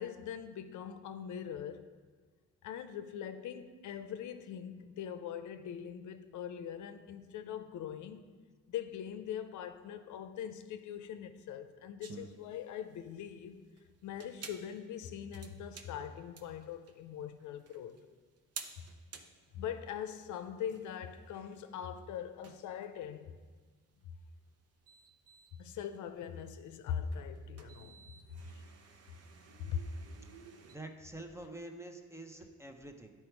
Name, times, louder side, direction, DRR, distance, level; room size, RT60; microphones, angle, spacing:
voice 1, 0.0-1.9 2.6-8.3 8.7-13.6 14.0-18.0 19.5-23.4 25.6-28.0 28.4-28.6 29.6-29.8, left 8 dB, 75° left, 0.6 m, -42 dB
sound 1, 12.0-30.8, right 5 dB, 55° right, 0.8 m, -54 dB
voice 2, 30.7-33.1, right 1 dB, 10° right, 0.7 m, -47 dB
9.6 x 4.5 x 4.6 m
cardioid pair, 90°, 30 cm